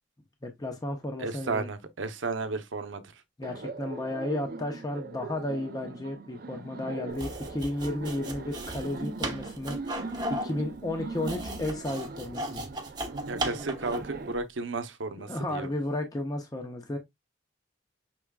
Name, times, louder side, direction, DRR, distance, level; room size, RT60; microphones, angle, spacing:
voice 1, 0.4-1.7 3.4-9.9 10.3-12.6 15.3-17.0, left 1 dB, 20° left, 0.7 m, -33 dB
voice 2, 1.2-3.0 13.2-15.7, right 3 dB, 85° right, 0.7 m, -33 dB
Laughter, 3.4-14.3, right 3 dB, 50° right, 0.5 m, -40 dB
sound 1, 7.1-14.2, right 1 dB, 20° right, 0.9 m, -36 dB
6.0 x 3.5 x 2.2 m
head